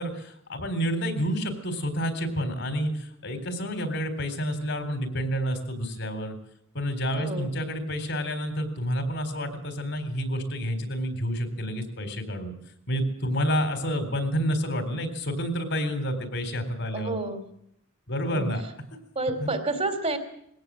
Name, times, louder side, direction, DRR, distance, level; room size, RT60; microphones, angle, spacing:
voice 1, 0.0-6.4 6.7-12.5 12.9-17.2 18.1-18.6 18.9-19.0 19.4-19.5, equal, 60° left, 8 dB, 4.0 m, -29 dB
voice 2, 7.1-7.5 16.9-17.4 18.3-18.5 19.1-20.2, right 2 dB, 30° right, 7 dB, 3.1 m, -29 dB
21.5 x 17.5 x 7.7 m, 0.73 s
head